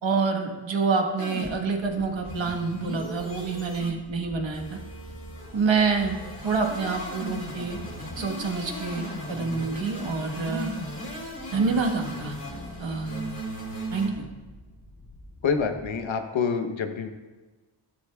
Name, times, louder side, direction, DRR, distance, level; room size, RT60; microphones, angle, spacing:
voice 1, 0.0-4.8 5.5-6.2 6.4-7.8 8.2-10.7 11.5-12.3 12.8-13.3 13.9-14.3, right 4 dB, 75° right, 3 dB, 1.4 m, -27 dB
sound 1, 1.2-14.1, equal, 30° left, 3.6 m, -37 dB
sound 2, 1.7-16.1, left 1 dB, 55° left, 3.1 m, -49 dB
voice 2, 15.4-17.1, left 5 dB, 85° left, 6 dB, 1.0 m, -27 dB
14.5 x 11.5 x 2.3 m, 1.3 s
cardioid pair, 55°, 45 cm